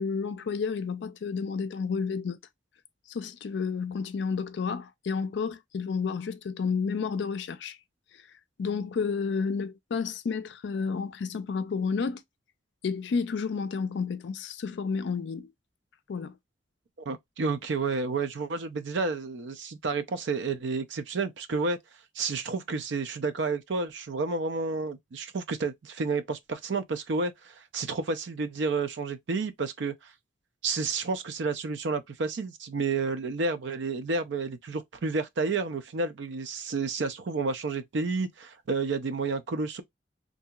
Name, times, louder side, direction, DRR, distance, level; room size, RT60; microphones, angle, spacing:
voice 1, 0.0-2.4 3.1-7.8 8.6-12.2 12.8-15.5 16.1-16.3, left 5 dB, 70° left, 0.4 m, -31 dB
voice 2, 17.1-21.8 22.2-29.9 30.6-39.8, right 4 dB, 75° right, 0.5 m, -30 dB
2.8 x 2.6 x 2.2 m
head